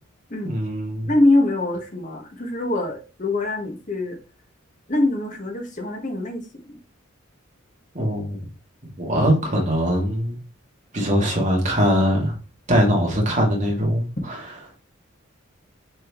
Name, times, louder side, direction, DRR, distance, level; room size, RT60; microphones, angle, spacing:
voice 1, 0.4-1.1 7.9-8.4 9.0-10.4 10.9-12.4 12.7-14.4, equal, 35° right, 2.5 m, -21 dB
voice 2, 1.1-4.2 4.9-6.8, left 2 dB, 40° left, 1.6 m, -23 dB
6.5 x 4.7 x 3.1 m
head